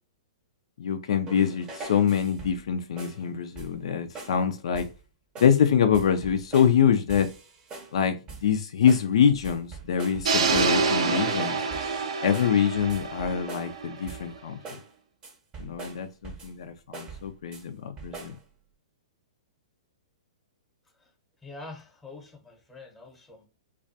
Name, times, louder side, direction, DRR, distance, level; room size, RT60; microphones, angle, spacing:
voice 1, 0.8-4.9 5.4-7.3 7.9-11.6 12.2-14.6 15.6-18.4, left 8 dB, 70° left, 0.3 m, -25 dB
sound 1, 1.3-2.7 3.0-3.2 3.6-3.9 4.2-4.4 4.7-5.0 5.4-5.6 5.9-6.8 7.1-8.0 8.3-8.6 8.9-10.9 11.1-13.8 14.1-14.4 14.6-14.9 15.2-16.6 16.9-17.7 18.0-18.4, right 4 dB, 25° right, 0.7 m, -43 dB
sound 2, 10.2-14.3, right 4 dB, 75° right, 0.4 m, -27 dB
voice 2, 21.4-23.5, left 3 dB, 5° left, 0.8 m, -45 dB
2.3 x 2.2 x 2.6 m
hypercardioid pair, 125°, 3 cm